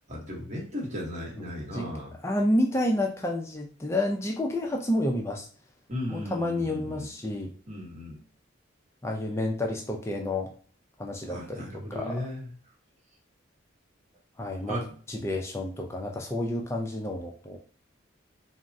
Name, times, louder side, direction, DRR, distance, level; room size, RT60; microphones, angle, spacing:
voice 1, 0.1-2.2 5.9-7.1 7.7-8.2 11.3-12.5 14.7-14.9, left 1 dB, 35° right, -3 dB, 0.9 m, -36 dB
voice 2, 1.4-1.9 2.2-5.5 6.1-7.5 9.0-10.5 11.0-12.1 14.4-14.8 15.1-17.6, left 1 dB, 15° left, 1 dB, 0.4 m, -29 dB
3.5 x 2.0 x 2.6 m, 0.43 s
head